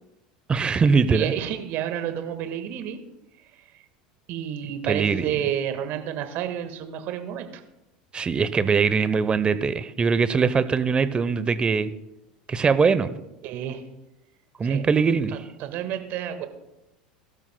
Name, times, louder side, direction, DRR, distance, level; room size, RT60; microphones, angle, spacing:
voice 1, 0.5-1.3 4.9-5.3 8.1-11.9 12.5-13.2 14.6-15.4, right 5 dB, 25° right, 13 dB, 0.9 m, -22 dB
voice 2, 1.1-3.0 4.3-7.6 13.4-13.8 14.6-14.8 15.6-16.5, right 10 dB, 50° right, 8 dB, 1.6 m, -30 dB
21.0 x 12.5 x 2.2 m, 0.93 s
hypercardioid pair, 80°, 4 cm